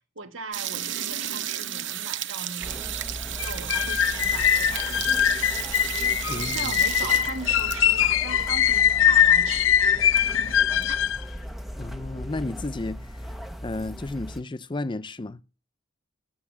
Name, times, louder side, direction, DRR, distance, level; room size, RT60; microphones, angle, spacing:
voice 1, 0.1-5.0 6.3-9.8 10.1-11.0, right 4 dB, 90° right, 1.5 m, -39 dB
sound 1, 0.5-8.0 8.4-8.5 8.7-8.8 9.4-9.5 9.8-10.8, right 11 dB, 65° right, 0.8 m, -33 dB
sound 2, 2.6-14.4, equal, ahead, 1.1 m, -38 dB
sound 3, 3.4-11.2, left 9 dB, 75° left, 0.5 m, -22 dB
voice 2, 6.3-6.7 11.7-13.3 13.6-15.4, left 2 dB, 25° left, 0.5 m, -33 dB
11.0 x 7.0 x 7.2 m
head